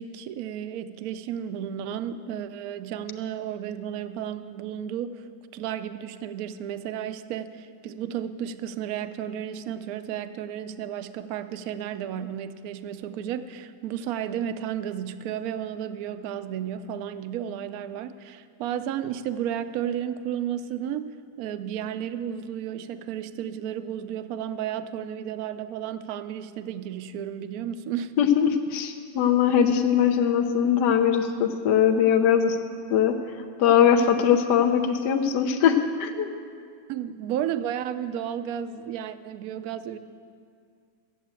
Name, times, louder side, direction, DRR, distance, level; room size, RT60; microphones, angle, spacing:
voice 1, 0.0-5.2 5.5-28.1 36.9-40.0, right 9 dB, 70° right, 12 dB, 1.0 m, -33 dB
voice 2, 28.2-32.6 32.9-33.2 33.6-36.3, left 8 dB, 75° left, 5 dB, 1.4 m, -21 dB
14.0 x 7.8 x 8.8 m, 2.3 s
omnidirectional pair, 1.9 m